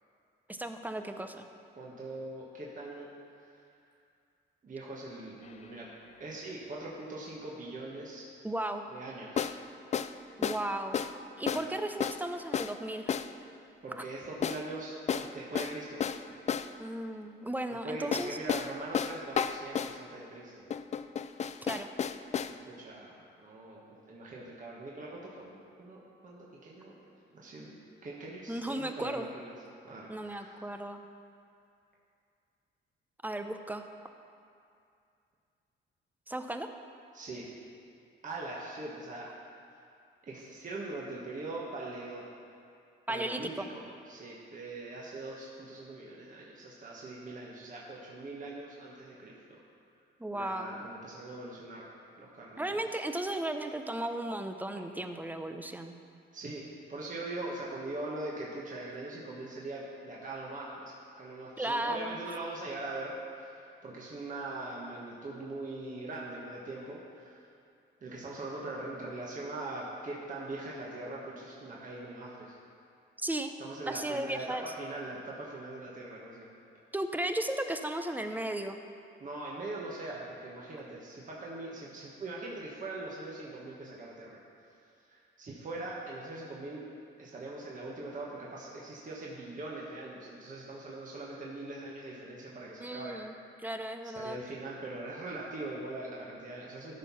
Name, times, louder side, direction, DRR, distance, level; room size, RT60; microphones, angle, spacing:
voice 1, 0.5-1.4 8.4-8.8 10.4-11.1 11.4-13.2 16.8-18.4 21.6-21.9 28.5-29.3 30.1-31.0 33.2-33.9 36.3-36.7 43.1-43.7 50.2-50.9 52.6-55.9 61.6-62.2 73.2-73.5 73.9-74.7 76.9-78.8 92.8-93.3 93.6-94.4, right 1 dB, 10° right, 7 dB, 0.6 m, -35 dB
voice 2, 1.7-3.1 3.3-3.5 4.6-5.9 6.2-8.3 8.9-9.5 11.5-11.7 13.8-16.2 17.8-20.8 22.5-23.8 24.1-26.9 27.3-29.5 29.8-30.7 37.1-37.4 38.2-39.3 40.2-42.2 43.1-49.6 50.3-51.9 52.2-53.0 56.3-67.5 68.0-72.6 73.6-76.5 79.2-84.4 85.0-86.9 87.2-93.2 94.1-97.0, right 2 dB, 40° right, -5 dB, 1.5 m, -42 dB
sound 1, 5.4-5.5 9.4-9.6 9.9-10.1 10.4-10.6 10.9-11.2 11.5-11.7 12.0-12.2 12.5-12.8 13.1-13.3 14.4-14.6 15.1-16.7 18.1-20.0 20.7-22.6, left 7 dB, 35° left, 0.4 m, -32 dB
13.0 x 4.5 x 5.7 m, 2.4 s
cardioid pair, 90°, 20 cm